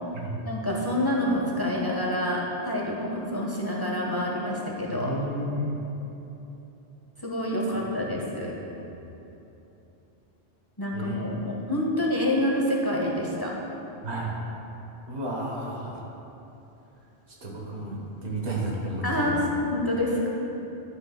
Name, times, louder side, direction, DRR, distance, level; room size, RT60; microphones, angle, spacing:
voice 1, 0.4-5.1 7.2-8.5 10.8-13.5 19.0-20.3, left 1 dB, 25° left, -3 dB, 0.8 m, -27 dB
voice 2, 4.9-5.8 8.1-8.2 8.4-8.5 10.9-11.3 14.0-14.4 15.1-15.9 17.4-19.4, right 1 dB, 80° right, -3 dB, 1.5 m, -32 dB
11.0 x 7.2 x 2.3 m, 3.0 s
omnidirectional pair, 1.1 m